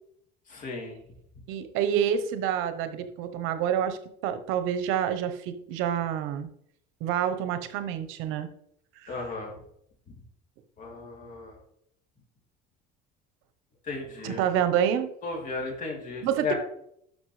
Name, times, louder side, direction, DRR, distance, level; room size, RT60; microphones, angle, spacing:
voice 1, 0.5-1.0 9.1-9.5 10.8-11.6 13.9-14.4 15.2-16.5, left 4 dB, 40° left, 0 dB, 3.0 m, -35 dB
voice 2, 1.5-6.5 7.0-8.5 9.0-9.2 14.2-15.1 16.2-16.5, right 9 dB, 80° right, 10 dB, 0.9 m, -28 dB
12.0 x 5.7 x 3.2 m, 0.70 s
cardioid pair, 140°, 20 cm